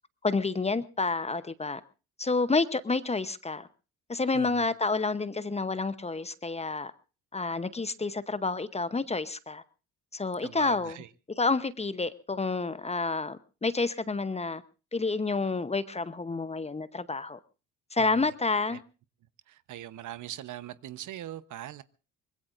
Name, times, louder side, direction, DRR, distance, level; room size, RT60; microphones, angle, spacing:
voice 1, 0.2-1.8 2.2-3.7 4.1-6.9 7.3-9.6 10.1-11.0 11.4-14.6 14.9-17.4 17.9-18.8, left 3 dB, 20° left, 0.9 m, -29 dB
voice 2, 4.3-4.7 10.4-11.1 18.0-18.3 18.7-18.8 19.5-21.8, right 12 dB, 55° right, 1.0 m, -41 dB
24.0 x 20.5 x 2.6 m
supercardioid pair, 70°, 36 cm